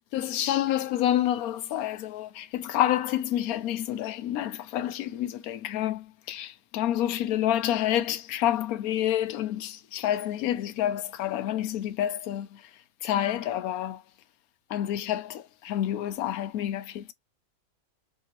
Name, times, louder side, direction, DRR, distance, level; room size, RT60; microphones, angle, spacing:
voice 1, 0.1-12.6 13.0-14.0 14.7-17.1, left 12 dB, 80° left, 1.0 m, -28 dB
3.5 x 2.8 x 2.8 m
omnidirectional pair, 1.5 m